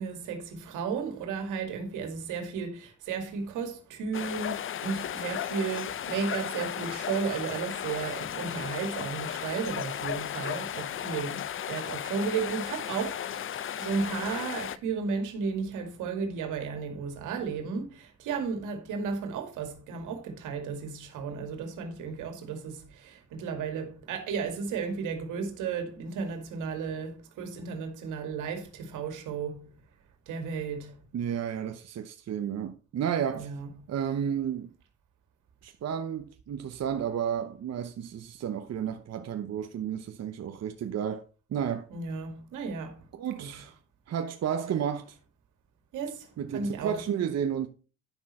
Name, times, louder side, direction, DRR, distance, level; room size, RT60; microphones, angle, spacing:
voice 1, 0.0-29.8 30.3-31.1 33.3-33.9 41.9-43.1 43.4-43.5 45.9-47.0, right 5 dB, 90° right, 2.3 m, -34 dB
sound 1, 4.1-14.8, left 10 dB, 45° left, 0.5 m, -35 dB
voice 2, 31.1-33.5 33.9-34.7 35.6-41.2 41.5-41.9 43.2-43.8 44.1-45.2 46.4-47.7, right 8 dB, 60° right, 0.9 m, -32 dB
10.0 x 6.2 x 4.3 m
cardioid pair, 90°, 30 cm